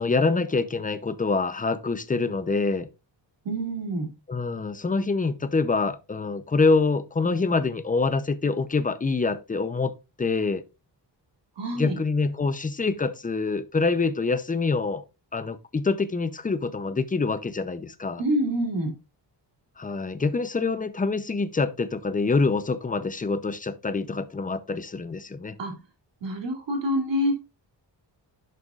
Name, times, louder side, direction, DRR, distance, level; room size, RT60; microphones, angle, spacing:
voice 1, 0.0-2.9 4.3-9.9 10.2-10.6 11.8-15.0 15.3-18.2 19.8-25.6, left 4 dB, 20° left, 0.6 m, -25 dB
voice 2, 3.4-4.1 11.6-12.0 18.2-18.9 25.6-25.8 26.2-27.3, equal, 80° right, 2.9 m, -26 dB
11.0 x 6.8 x 2.4 m
wide cardioid pair, 145°, 43 cm